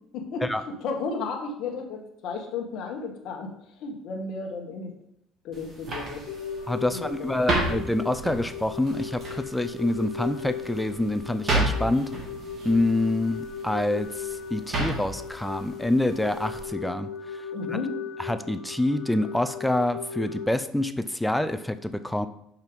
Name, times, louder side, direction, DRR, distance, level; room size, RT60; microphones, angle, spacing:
voice 1, 0.1-4.9 5.4-6.3 6.9-7.6 17.5-18.0, left 4 dB, 50° left, 2 dB, 1.5 m, -34 dB
sound 1, 5.5-16.7, right 2 dB, 30° right, 1.8 m, -33 dB
sound 2, 6.3-20.5, left 6 dB, 75° left, 1.4 m, -37 dB
voice 2, 6.7-12.1 12.6-17.4 17.7-17.8 18.2-22.3, left 1 dB, 5° left, 10 dB, 0.3 m, -27 dB
6.0 x 5.7 x 5.2 m, 0.77 s
cardioid pair, 160°, 0 cm